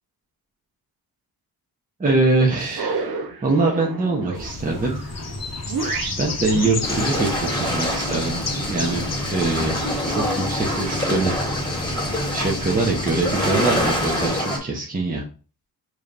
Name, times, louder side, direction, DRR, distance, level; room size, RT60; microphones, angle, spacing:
voice 1, 2.0-3.1 3.4-5.0 6.2-11.6 12.3-15.2, right 3 dB, 20° right, -1 dB, 0.9 m, -23 dB
sound 1, 2.6-8.9, right 4 dB, 65° right, 0.9 m, -32 dB
sound 2, 4.3-14.3, left 3 dB, 40° left, 0.8 m, -33 dB
sound 3, 6.8-14.6, left 1 dB, 10° left, 1.8 m, -25 dB
4.9 x 3.0 x 2.5 m, 0.36 s
cardioid pair, 75°, 39 cm